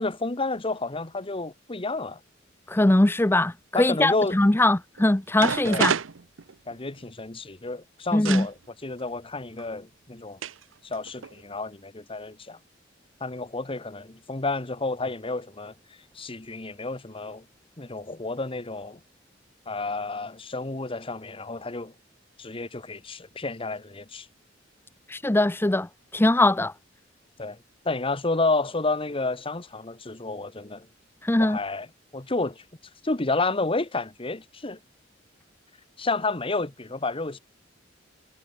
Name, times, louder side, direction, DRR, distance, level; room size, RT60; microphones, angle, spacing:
voice 1, 0.0-2.2 3.7-4.4 5.6-5.9 6.7-10.4 10.8-12.6 13.2-15.7 16.1-17.4 17.8-19.0 19.7-21.9 22.4-24.3 27.4-27.6 27.8-30.9 31.4-31.9 32.1-32.6 33.0-34.8 36.0-37.4, left 3 dB, 30° left, 1.3 m, -30 dB
voice 2, 2.7-5.9 8.1-8.5 25.1-26.7 31.2-31.6, left 1 dB, 10° left, 0.5 m, -21 dB
sound 1, 5.0-5.1 5.4-7.0 8.3-8.5 9.6-9.7 10.4-10.6 10.9-11.4, right 6 dB, 85° right, 0.8 m, -28 dB
head